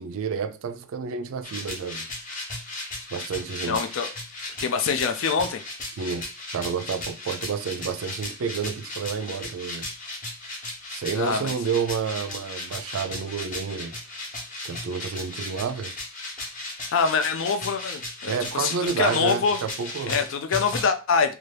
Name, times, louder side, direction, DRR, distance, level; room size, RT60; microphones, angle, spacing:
voice 1, 0.0-2.1 3.1-3.9 6.0-6.3 6.5-9.9 10.9-13.9 14.6-16.0 18.3-20.2, right 6 dB, 70° right, 0.3 m, -30 dB
sound 1, 1.4-20.8, left 2 dB, 35° left, 0.8 m, -36 dB
voice 2, 3.7-4.1 4.6-5.6 11.1-11.5 16.9-19.6 20.1-21.4, left 5 dB, 65° left, 0.4 m, -25 dB
2.7 x 2.3 x 3.2 m
head